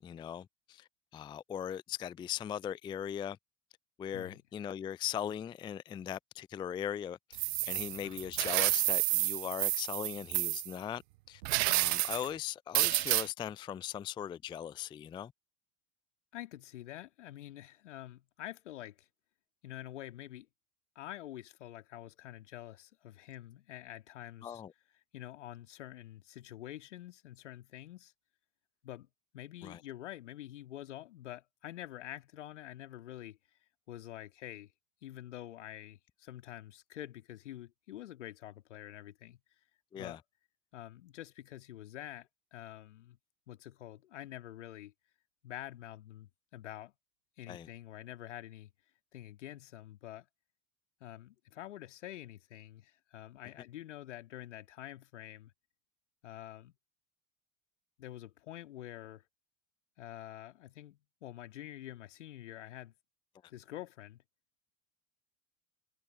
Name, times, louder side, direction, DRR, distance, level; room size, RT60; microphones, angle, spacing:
voice 1, 0.0-3.4 4.0-11.0 11.3-11.4 11.7-15.3 24.4-24.7 29.6-29.8 39.9-40.2 47.5-47.7, left 9 dB, 15° left, 0.4 m, -39 dB
sound 1, 7.3-10.7 11.4-12.3 12.7-13.3, right 21 dB, 60° right, 0.5 m, -30 dB
voice 2, 16.3-19.1 19.6-20.5 20.9-24.6 25.1-28.1 28.8-29.1 29.3-33.4 33.9-34.7 35.0-39.4 39.9-40.2 40.7-43.2 43.5-44.9 45.4-46.9 47.4-48.7 49.1-50.3 51.0-55.5 56.2-56.7 58.0-59.2 60.0-62.9 63.5-64.2, left 13 dB, 70° left, 2.6 m, -47 dB
figure-of-eight pair, 70°, 38 cm